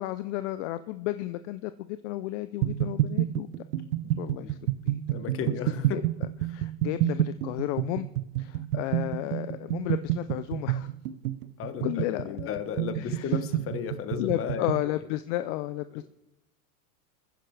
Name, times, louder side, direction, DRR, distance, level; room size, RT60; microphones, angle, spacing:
voice 1, 0.0-3.5 4.2-4.6 4.9-5.0 5.5-5.6 5.9-6.0 6.5-8.1 8.4-10.9 11.8-12.5 13.0-13.3 14.2-16.1, left 16 dB, 55° left, 12 dB, 0.6 m, -33 dB
sound 1, 2.6-14.9, right 14 dB, 80° right, 0.8 m, -29 dB
voice 2, 4.0-4.6 5.1-6.0 6.4-6.6 11.6-14.9, left 8 dB, 30° left, 10 dB, 1.3 m, -35 dB
28.5 x 10.0 x 3.3 m, 0.90 s
supercardioid pair, 125°, 44 cm